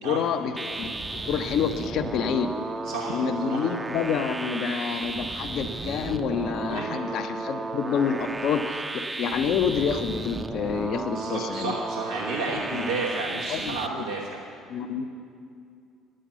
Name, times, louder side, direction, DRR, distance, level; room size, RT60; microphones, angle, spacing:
voice 1, 0.0-2.5 3.0-8.8 9.2-11.8 12.5-12.9 13.5-14.1 14.7-15.1, left 6 dB, 55° left, 8 dB, 0.6 m, -28 dB
sound 1, 0.6-13.9, right 2 dB, 20° right, 0.6 m, -34 dB
voice 2, 2.8-3.2 3.5-3.6 6.7-7.0 11.1-14.4, right 3 dB, 80° right, -4 dB, 1.1 m, -32 dB
10.0 x 7.6 x 8.0 m, 2.4 s
figure-of-eight pair, 55°, 0 cm